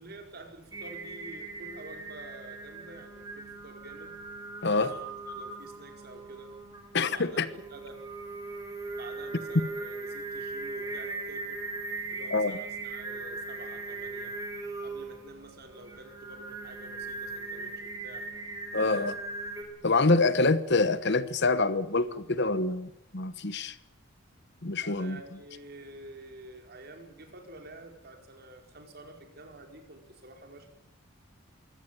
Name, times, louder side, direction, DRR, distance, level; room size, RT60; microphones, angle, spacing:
voice 1, 0.0-4.1 4.6-6.5 7.1-8.0 9.0-11.6 12.1-14.4 14.8-17.7 18.0-18.3 18.7-19.1 24.8-30.7, right 2 dB, 50° right, 5.0 m, -48 dB
Singing, 0.7-19.6, right 3 dB, 15° right, 4.9 m, -39 dB
voice 2, 6.9-7.5 12.3-12.5 18.7-19.1 19.8-23.8 24.6-25.2, left 3 dB, 55° left, 1.2 m, -26 dB
23.0 x 17.0 x 9.1 m
head